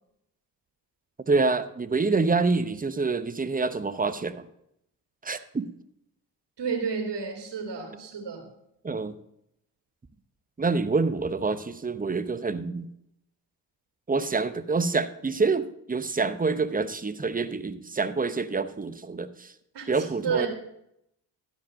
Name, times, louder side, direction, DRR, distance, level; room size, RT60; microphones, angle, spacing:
voice 1, 1.2-4.5 5.2-5.7 8.8-9.1 10.6-12.9 14.1-19.5 19.9-20.5, right 4 dB, 15° right, 12 dB, 0.8 m, -27 dB
voice 2, 6.6-8.5 19.7-20.5, right 5 dB, 55° right, 2 dB, 2.5 m, -31 dB
12.5 x 5.2 x 6.4 m, 0.78 s
supercardioid pair, 55°, 49 cm